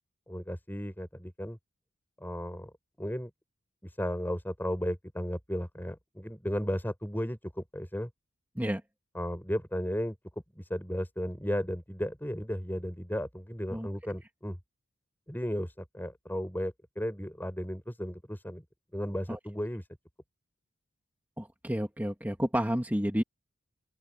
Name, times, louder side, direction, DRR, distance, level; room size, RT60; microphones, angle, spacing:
voice 1, 0.3-1.6 2.2-2.7 3.0-3.3 3.8-8.1 9.1-10.1 10.5-14.6 15.3-18.6 18.9-19.9, equal, 10° left, 6.8 m, -34 dB
voice 2, 21.4-23.2, equal, 10° right, 2.1 m, -30 dB
open air
head